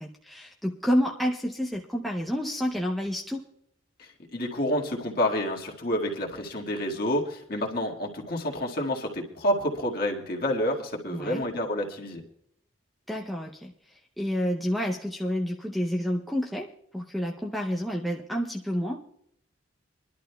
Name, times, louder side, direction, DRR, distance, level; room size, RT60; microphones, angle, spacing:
voice 1, 0.0-3.4 11.1-11.4 13.1-16.7 16.9-19.0, equal, ahead, 0 dB, 0.6 m, -29 dB
voice 2, 4.0-12.2, left 1 dB, 50° left, 0 dB, 1.8 m, -29 dB
26.0 x 11.5 x 2.3 m, 0.70 s
head